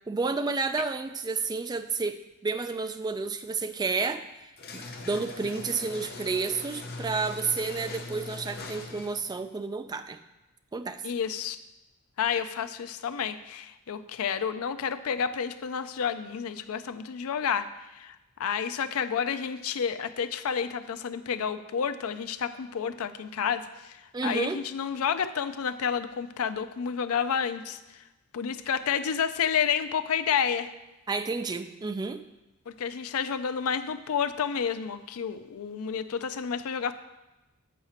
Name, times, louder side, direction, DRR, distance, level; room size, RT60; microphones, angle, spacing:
voice 1, 0.1-2.2 2.4-4.2 4.7-10.2 10.7-11.0 24.1-24.6 31.1-32.2, right 4 dB, 20° right, 9 dB, 0.3 m, -30 dB
sound 1, 4.6-9.3, left 3 dB, 45° left, 0.7 m, -41 dB
voice 2, 11.0-11.6 12.2-17.7 18.0-24.0 24.2-27.8 28.3-30.7 32.7-36.9, left 7 dB, 75° left, 11 dB, 0.4 m, -30 dB
8.2 x 4.8 x 4.3 m, 0.99 s
head